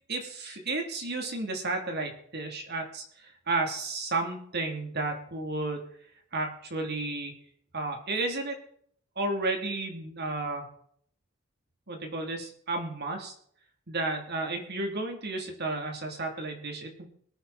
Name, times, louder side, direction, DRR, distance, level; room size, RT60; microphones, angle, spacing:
voice 1, 0.1-5.8 6.3-7.3 7.7-8.6 9.2-10.7 11.9-13.3 13.9-17.0, right 2 dB, 50° right, 3 dB, 3.2 m, -32 dB
23.5 x 9.2 x 4.3 m, 0.63 s
head